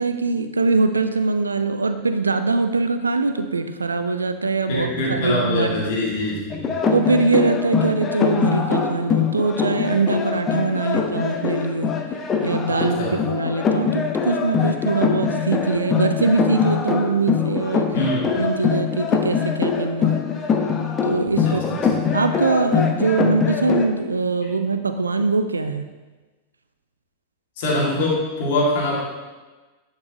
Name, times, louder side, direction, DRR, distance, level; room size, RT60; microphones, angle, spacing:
voice 1, 0.0-5.9 6.9-11.9 12.4-17.9 18.4-20.2 21.0-25.9, right 3 dB, 75° right, 9 dB, 0.4 m, -22 dB
voice 2, 4.7-6.7 12.7-13.1 17.9-18.3 21.3-21.8 27.6-29.0, left 1 dB, 50° left, -4 dB, 2.3 m, -24 dB
sound 1, 6.5-23.9, left 6 dB, 25° left, 0.8 m, -23 dB
10.5 x 5.3 x 3.0 m, 1.2 s
figure-of-eight pair, 90°, 0 cm